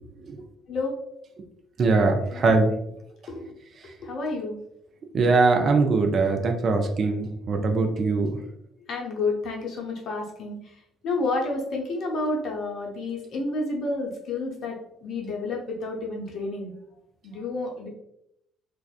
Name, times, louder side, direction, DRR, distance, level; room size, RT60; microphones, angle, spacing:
voice 1, 1.8-2.7 5.1-8.4, right 3 dB, 45° right, 4 dB, 0.4 m, -22 dB
voice 2, 4.0-4.6 8.9-10.6 11.0-14.8 15.0-16.7 17.2-17.9, left 2 dB, 50° left, 0 dB, 0.6 m, -30 dB
3.3 x 2.3 x 2.2 m, 0.79 s
figure-of-eight pair, 50°, 0 cm